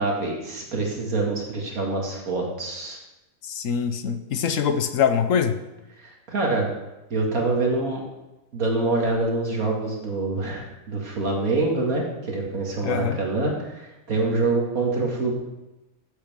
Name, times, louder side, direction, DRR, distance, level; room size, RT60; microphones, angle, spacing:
voice 1, 0.0-3.0 6.0-6.7 7.1-8.0 8.5-15.3, right 3 dB, 85° right, -1 dB, 2.7 m, -25 dB
voice 2, 3.4-5.6 12.8-13.2, left 7 dB, 70° left, 9 dB, 1.2 m, -23 dB
14.0 x 8.0 x 3.7 m, 1.0 s
omnidirectional pair, 1.5 m